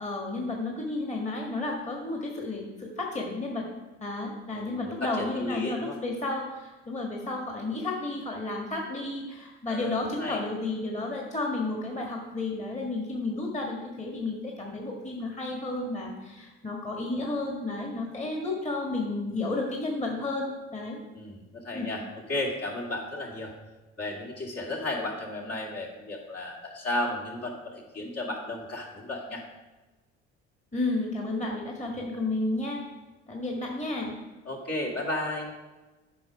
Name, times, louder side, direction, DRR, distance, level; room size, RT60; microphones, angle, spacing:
voice 1, 0.0-3.7 4.0-21.0 21.7-21.9 30.7-32.8 33.3-34.2, left 2 dB, 20° left, 0 dB, 1.7 m, -32 dB
voice 2, 4.5-6.0 9.7-10.4 21.1-22.0 22.3-23.5 24.0-29.4 34.5-35.5, left 1 dB, 50° left, -2 dB, 2.3 m, -34 dB
8.4 x 5.2 x 4.9 m, 1.1 s
supercardioid pair, 70°, 32 cm